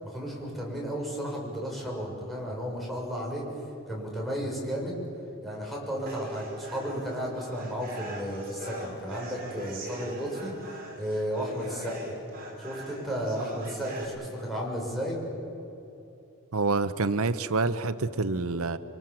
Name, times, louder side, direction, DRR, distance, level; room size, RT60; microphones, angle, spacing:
voice 1, 0.0-3.5 3.9-5.0 5.4-10.5 11.0-12.1 12.6-15.2, equal, ahead, -3 dB, 6.9 m, -33 dB
sound 1, 6.1-14.0, right 1 dB, 45° right, 5.6 m, -41 dB
voice 2, 16.5-18.8, right 3 dB, 85° right, 12 dB, 0.9 m, -27 dB
29.0 x 24.0 x 7.7 m, 3.0 s
head